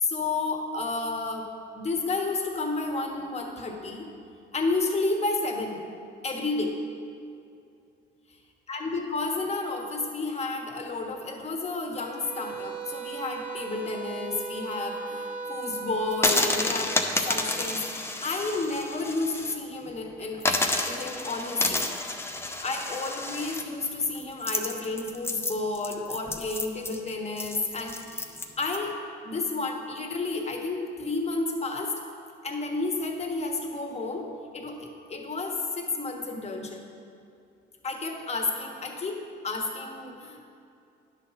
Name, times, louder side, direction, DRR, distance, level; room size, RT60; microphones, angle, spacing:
voice 1, 0.0-4.1 4.5-5.8 6.2-6.8 8.7-20.5 20.9-21.8 22.6-28.3 28.6-31.9 32.4-36.8 37.8-40.4, left 3 dB, 35° left, 1 dB, 1.3 m, -31 dB
sound 1, 12.0-16.6, right 5 dB, 40° right, 1.3 m, -37 dB
sound 2, 16.1-19.5 19.9-20.0 20.4-28.8, left 2 dB, 10° left, 0.7 m, -30 dB
10.0 x 4.0 x 6.9 m, 2.6 s
cardioid pair, 90°, 20 cm